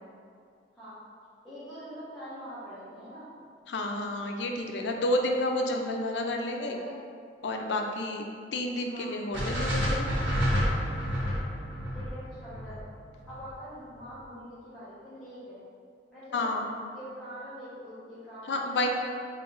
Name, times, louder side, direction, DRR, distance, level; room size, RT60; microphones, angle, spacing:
voice 1, 1.4-3.3 6.4-7.0 8.9-9.2 11.9-12.8 13.3-15.6 16.1-16.5 16.9-18.9, equal, ahead, -16 dB, 0.9 m, -44 dB
voice 2, 3.7-6.8 7.4-8.2 8.5-10.1 16.3-16.7 18.5-18.9, left 1 dB, 75° left, 2 dB, 0.4 m, -30 dB
sound 1, 9.3-13.5, equal, 90° right, 0.8 m, -29 dB
3.1 x 2.9 x 3.7 m, 2.2 s
head